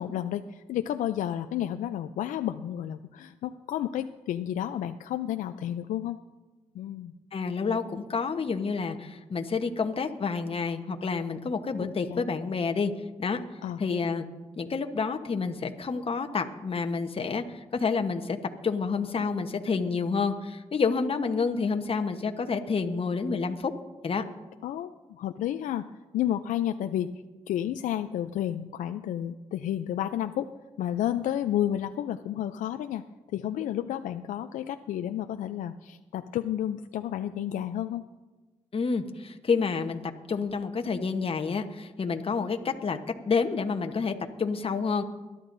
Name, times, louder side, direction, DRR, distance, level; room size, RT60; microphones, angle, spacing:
voice 1, 0.0-6.2 6.7-7.1 11.8-12.2 13.6-13.8 24.6-25.9 26.1-27.1 27.5-30.5 30.8-33.0 33.3-38.1, left 11 dB, 80° left, 9 dB, 0.4 m, -31 dB
voice 2, 7.3-12.9 13.2-13.4 13.8-14.3 14.6-18.4 18.6-23.7 24.0-24.2 38.7-40.0 40.3-43.0 43.3-45.0, left 5 dB, 45° left, 6 dB, 1.1 m, -29 dB
21.5 x 12.0 x 2.6 m, 1.2 s
supercardioid pair, 50°, 13 cm